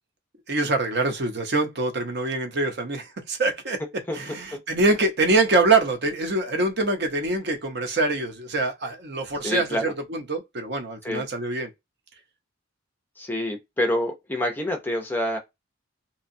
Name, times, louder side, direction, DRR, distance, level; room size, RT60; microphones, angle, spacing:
voice 1, 0.5-3.8 4.1-11.7, right 2 dB, 50° right, 0.7 m, -24 dB
voice 2, 4.1-4.6 9.4-9.9 11.0-11.2 13.2-15.4, left 1 dB, 10° left, 0.5 m, -27 dB
2.7 x 2.2 x 2.6 m
head